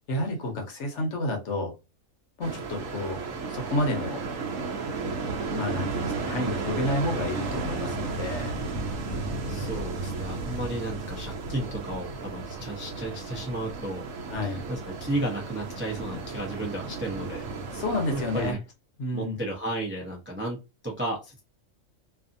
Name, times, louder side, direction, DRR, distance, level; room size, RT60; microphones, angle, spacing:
voice 1, 0.1-1.7 2.4-3.2 3.5-4.2 5.5-8.5 14.3-14.6 17.7-18.6 19.0-19.4, left 1 dB, 60° left, 3 dB, 1.0 m, -30 dB
sound 1, 2.4-18.5, right 4 dB, 70° right, 1.1 m, -33 dB
voice 2, 9.4-14.1 14.4-17.5 18.1-18.6 19.1-21.4, right 1 dB, 15° right, -1 dB, 0.4 m, -33 dB
2.7 x 2.5 x 2.5 m, 0.26 s
omnidirectional pair, 1.4 m